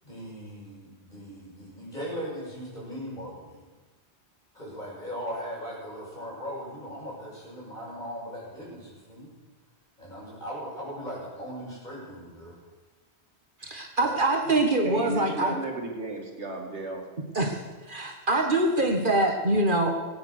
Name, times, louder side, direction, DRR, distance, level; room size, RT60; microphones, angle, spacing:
voice 1, 0.0-3.6 4.5-9.3 10.0-12.6 14.0-14.2, equal, 40° left, -5 dB, 5.8 m, -38 dB
voice 2, 13.6-15.5 17.4-17.6 17.9-19.9, right 2 dB, 50° right, 3 dB, 1.7 m, -24 dB
voice 3, 14.8-17.0, right 1 dB, 85° right, 1 dB, 2.4 m, -34 dB
19.0 x 8.8 x 6.5 m, 1.3 s
omnidirectional pair, 1.1 m